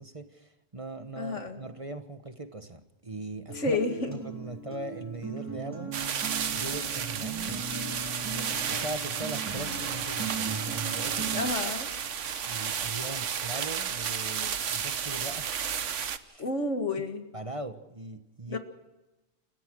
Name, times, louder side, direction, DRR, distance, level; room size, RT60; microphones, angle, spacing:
voice 1, 0.0-3.8 4.1-7.9 8.3-11.5 12.4-15.6 16.2-16.4 17.0-17.1 17.3-18.6, right 2 dB, 30° right, 8 dB, 1.3 m, -40 dB
voice 2, 1.1-1.6 3.5-4.2 11.3-11.9 16.4-17.3 18.5-18.6, left 3 dB, 85° left, 6 dB, 2.4 m, -30 dB
Acoustic guitar, 3.5-11.5, right 4 dB, 15° right, 4.1 m, -38 dB
sound 1, 5.9-16.2, right 7 dB, 85° right, 1.3 m, -32 dB
29.0 x 15.5 x 6.2 m, 1.0 s
omnidirectional pair, 1.2 m